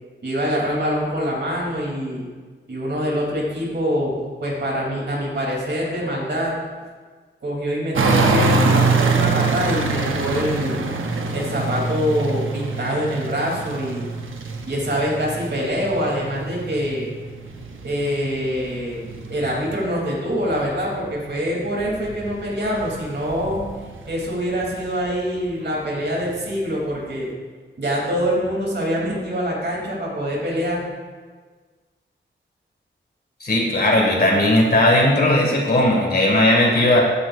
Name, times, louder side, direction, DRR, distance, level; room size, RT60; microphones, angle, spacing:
voice 1, 0.2-2.2 2.7-6.6 7.4-10.8 11.3-14.1 14.7-17.1 17.8-19.0 19.3-23.6 24.1-27.3 27.8-30.8, equal, 60° right, -3 dB, 3.4 m, -24 dB
sound 1, 7.9-19.9 20.3-25.1 25.7-25.8, right 3 dB, 80° right, 0.9 m, -25 dB
voice 2, 33.4-37.0, left 1 dB, 50° left, -1 dB, 2.7 m, -17 dB
15.5 x 10.0 x 2.7 m, 1.5 s
wide cardioid pair, 130°, 20 cm